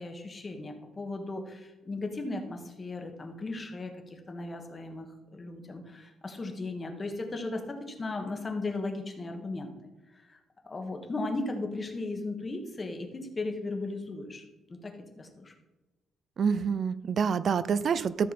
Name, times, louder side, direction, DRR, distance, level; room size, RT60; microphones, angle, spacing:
voice 1, 0.0-9.7 10.1-10.4 10.6-14.4 14.7-15.5, left 2 dB, 20° left, 4 dB, 1.4 m, -36 dB
voice 2, 16.4-18.3, right 6 dB, 45° right, 16 dB, 0.4 m, -27 dB
13.5 x 6.6 x 4.3 m, 1.0 s
cardioid pair, 155°, 0 cm